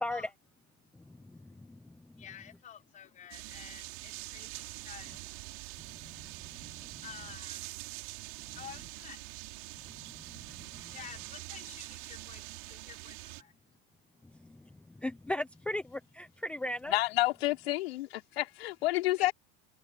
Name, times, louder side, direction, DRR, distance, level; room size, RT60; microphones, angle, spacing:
voice 1, 0.9-2.2 5.8-7.0 8.4-8.5 9.8-10.9 14.2-17.0, left 1 dB, 5° left, 0.7 m, -40 dB
voice 2, 2.2-5.2 7.0-7.8 8.5-9.2 10.9-13.5 19.2-19.3, left 9 dB, 25° left, 5.6 m, -50 dB
sound 1, 3.3-13.4, right 29 dB, 55° right, 6.1 m, -45 dB
voice 3, 16.9-19.3, left 17 dB, 90° left, 3.9 m, -29 dB
supercardioid pair, 160°, 30 cm